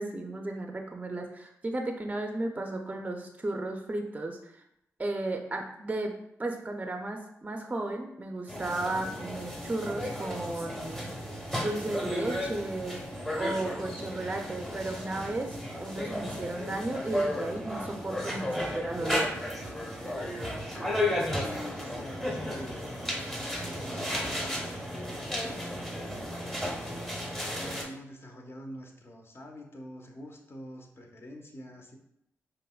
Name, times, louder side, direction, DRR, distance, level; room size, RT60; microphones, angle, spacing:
voice 1, 0.0-4.5 5.0-6.1 6.4-11.1 11.6-13.0 13.3-19.3, right 2 dB, 25° right, 3 dB, 0.5 m, -34 dB
sound 1, 8.5-27.8, left 1 dB, 5° left, 0.9 m, -34 dB
voice 2, 21.3-22.9 23.6-32.0, equal, 45° left, 2 dB, 0.7 m, -46 dB
5.1 x 2.1 x 2.3 m, 0.78 s
supercardioid pair, 45°, 6 cm